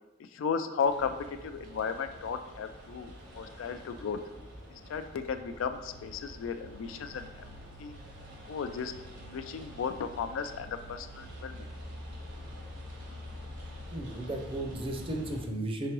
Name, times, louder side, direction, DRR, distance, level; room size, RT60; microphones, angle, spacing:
voice 1, 0.3-4.2 4.7-7.5 7.8-7.9 8.5-8.9 9.2-11.7, left 6 dB, 85° left, 9 dB, 0.3 m, -35 dB
sound 1, 0.8-15.4, left 1 dB, 80° right, 1.3 m, -46 dB
voice 2, 13.9-15.9, right 1 dB, 30° right, 3 dB, 0.5 m, -34 dB
4.7 x 3.8 x 3.0 m, 1.0 s
head